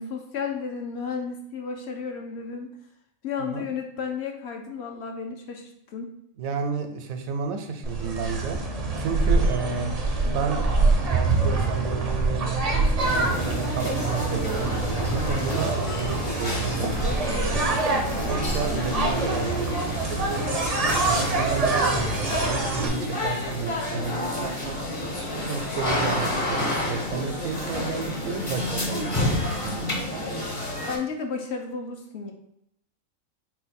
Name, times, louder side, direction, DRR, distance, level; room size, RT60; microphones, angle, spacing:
voice 1, 0.0-2.7 3.2-6.1 18.7-19.1 30.9-32.3, left 5 dB, 60° left, 3 dB, 0.8 m, -33 dB
voice 2, 6.4-8.6 9.0-9.9 10.3-10.6 11.0-14.7 15.1-17.7 18.3-20.5 21.0-22.1 22.4-24.8 25.3-30.2, right 5 dB, 85° right, 6 dB, 1.0 m, -32 dB
sound 1, 7.8-22.9, right 3 dB, 50° right, 0.4 m, -25 dB
sound 2, 10.6-30.1, left 1 dB, 80° left, 2.2 m, -42 dB
sound 3, 13.0-31.0, left 1 dB, 30° left, 0.7 m, -30 dB
4.4 x 2.2 x 4.2 m, 0.76 s
omnidirectional pair, 1.4 m